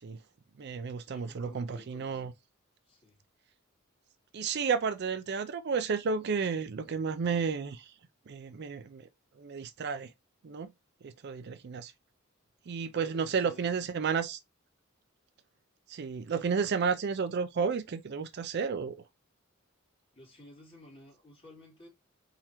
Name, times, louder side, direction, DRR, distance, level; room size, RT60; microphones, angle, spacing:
voice 1, 0.6-2.3 4.3-7.9 8.3-9.1 9.4-10.1 10.4-10.7 11.0-11.9 12.7-14.4 15.9-19.0, right 5 dB, 55° right, 0.4 m, -32 dB
voice 2, 1.1-2.4 2.8-3.2 13.0-13.9 20.1-21.9, left 1 dB, 30° left, 3.0 m, -54 dB
4.3 x 3.7 x 2.9 m
head